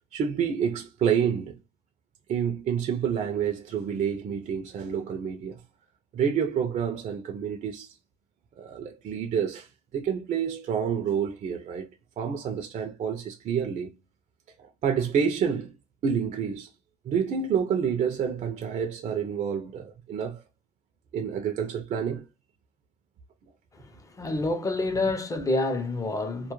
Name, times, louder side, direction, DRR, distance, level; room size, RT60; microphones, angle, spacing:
voice 1, 0.1-1.5 2.3-5.6 6.1-8.0 8.6-11.9 12.2-13.9 14.6-15.7 16.0-16.7 17.0-20.4 21.1-22.2, right 7 dB, 45° right, 0.4 m, -28 dB
voice 2, 23.7-26.5, left 2 dB, 20° left, 0.5 m, -28 dB
2.2 x 2.0 x 3.0 m
cardioid pair, 110°, 17 cm